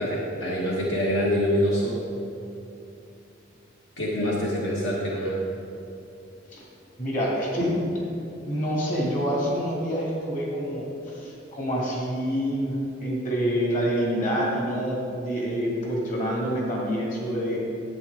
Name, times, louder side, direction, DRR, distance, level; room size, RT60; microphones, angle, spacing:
voice 1, 0.0-2.0 4.0-5.4, equal, 75° left, -4 dB, 1.3 m, -25 dB
voice 2, 7.0-7.7 8.4-17.6, equal, 45° left, -4 dB, 2.3 m, -27 dB
10.5 x 8.5 x 3.6 m, 2.7 s
head